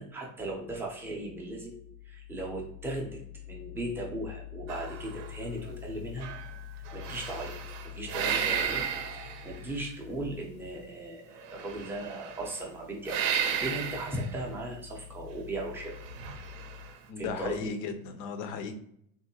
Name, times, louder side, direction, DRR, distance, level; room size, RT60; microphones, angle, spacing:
voice 1, 0.0-1.7 2.1-3.2 3.5-6.3 6.9-7.6 7.9-8.8 9.1-13.3 13.6-16.0 17.2-17.6, equal, 5° right, -2 dB, 0.4 m, -37 dB
sound 1, 4.7-5.9 6.2-9.9 11.5-12.6 13.0-14.4 15.8-17.0, right 8 dB, 65° right, 0.6 m, -34 dB
voice 2, 17.1-18.8, left 5 dB, 75° left, 8 dB, 0.6 m, -36 dB
3.6 x 2.5 x 2.7 m, 0.69 s
cardioid pair, 160°, 36 cm